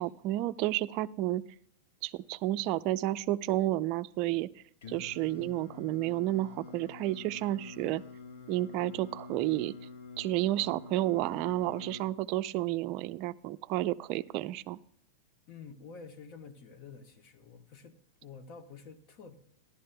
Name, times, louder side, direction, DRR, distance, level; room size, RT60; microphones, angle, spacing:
voice 1, 0.0-1.4 2.0-4.5 4.9-8.0 8.5-9.7 10.2-14.8, right 15 dB, 45° right, 11 dB, 0.4 m, -31 dB
Singing, 4.8-12.0, left 4 dB, 75° left, 1.3 m, -47 dB
voice 2, 15.5-19.3, left 5 dB, 45° left, 8 dB, 1.1 m, -49 dB
13.5 x 11.0 x 2.2 m, 0.67 s
supercardioid pair, 140°, 0 cm